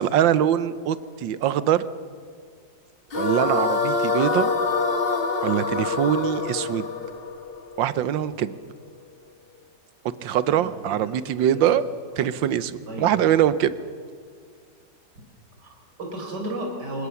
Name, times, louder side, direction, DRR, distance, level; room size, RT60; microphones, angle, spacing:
voice 1, 0.0-1.8 3.1-4.5 5.4-6.9 7.8-8.5 10.2-11.8 12.2-13.7, right 10 dB, 90° right, 15 dB, 1.6 m, -23 dB
sound 1, 3.1-8.3, left 4 dB, 35° left, 1.3 m, -25 dB
voice 2, 10.5-11.2 11.5-11.8 12.2-12.5 12.9-13.2 15.6-17.1, right 1 dB, 65° right, 1 dB, 5.1 m, -34 dB
23.5 x 20.0 x 7.1 m, 2.1 s
omnidirectional pair, 2.0 m